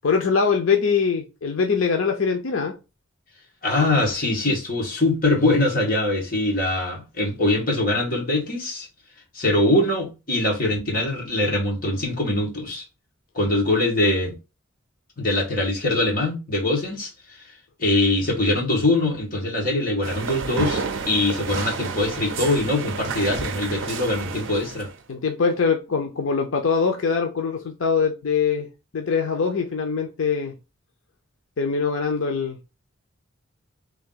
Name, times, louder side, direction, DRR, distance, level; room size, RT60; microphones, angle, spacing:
voice 1, 0.0-2.8 25.1-30.6 31.6-32.6, left 5 dB, 80° left, 0.6 m, -23 dB
voice 2, 3.6-8.9 9.3-12.8 13.3-14.4 15.2-17.4 17.8-24.9, left 2 dB, 45° left, 1.7 m, -23 dB
sound 1, 20.0-25.0, right 5 dB, 65° right, 0.5 m, -30 dB
3.4 x 2.7 x 3.9 m
head